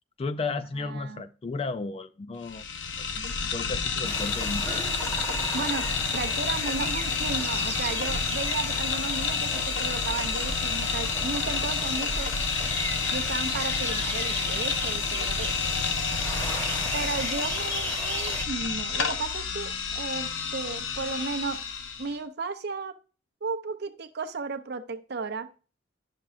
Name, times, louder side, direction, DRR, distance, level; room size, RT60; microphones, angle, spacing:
voice 1, 0.2-2.7 3.0-4.7, left 3 dB, 30° left, 0.3 m, -34 dB
voice 2, 0.7-1.3 5.5-5.9 6.1-12.3 13.1-15.5 16.9-21.6 22.0-22.9 23.4-25.5, right 4 dB, 55° right, 0.6 m, -34 dB
sound 1, 2.4-22.1, left 5 dB, 70° left, 0.6 m, -29 dB
sound 2, 4.0-18.4, equal, 10° left, 1.0 m, -36 dB
10.5 x 6.0 x 2.5 m
head